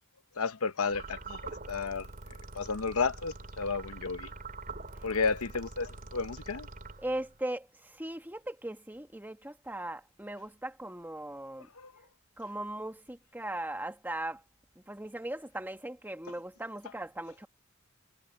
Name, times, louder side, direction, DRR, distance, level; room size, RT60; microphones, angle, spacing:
voice 1, 0.4-2.1 2.5-4.3 5.0-6.7 11.8-11.9, left 4 dB, 85° left, 1.0 m, -32 dB
sound 1, 0.9-7.4, right 3 dB, 40° right, 3.6 m, -45 dB
voice 2, 7.0-11.7 12.4-14.4 14.9-17.5, right 1 dB, 10° right, 1.6 m, -38 dB
head